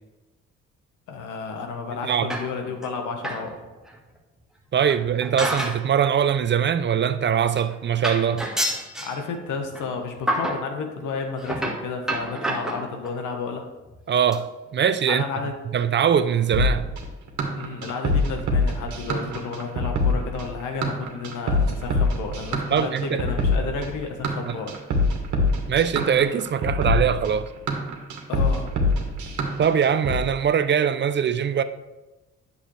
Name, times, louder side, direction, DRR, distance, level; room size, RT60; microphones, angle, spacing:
voice 1, 1.1-3.6 9.0-13.6 15.1-15.5 17.5-24.8 28.3-28.8, left 5 dB, 85° left, 1.3 m, -32 dB
sound 1, 2.3-2.9 3.2-3.5 3.9-4.0 4.8-5.9 6.2-6.4 7.2-7.3 7.6-7.7 8.0-9.2 9.7-9.9 10.3-10.7 11.4-13.2 13.8-14.0 14.3-14.4 14.7-14.8 15.0-15.1, right 1 dB, ahead, 1.5 m, -29 dB
voice 2, 4.7-8.5 14.1-14.5 14.7-15.2 15.7-16.9 22.7-23.2 24.5-24.6 25.7-27.5 29.6-31.6, right 8 dB, 40° right, 0.5 m, -22 dB
sound 2, 16.5-30.2, left 2 dB, 70° right, 1.6 m, -24 dB
8.8 x 7.0 x 3.3 m
cardioid pair, 90°, 30 cm